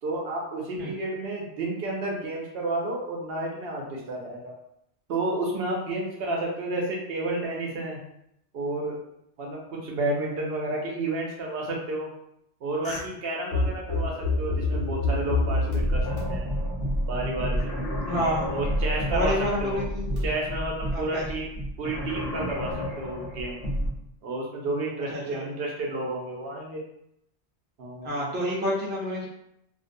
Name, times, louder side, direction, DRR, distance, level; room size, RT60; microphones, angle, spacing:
voice 1, 0.0-4.5 5.1-8.0 8.5-9.0 9.4-12.1 12.6-16.5 17.0-18.0 18.5-19.3 19.6-19.9 20.2-21.5 21.8-22.7 23.0-23.6 24.2-26.8 27.8-28.1, right 2 dB, 65° right, -1 dB, 0.8 m, -31 dB
sound 1, 12.8-13.0 13.5-23.9, left 1 dB, 60° left, 1.1 m, -28 dB
voice 2, 18.1-18.5 19.1-20.2 20.9-21.2 25.1-25.4 28.0-29.3, equal, 15° right, -5 dB, 0.4 m, -28 dB
2.4 x 2.1 x 2.6 m, 0.77 s
omnidirectional pair, 1.1 m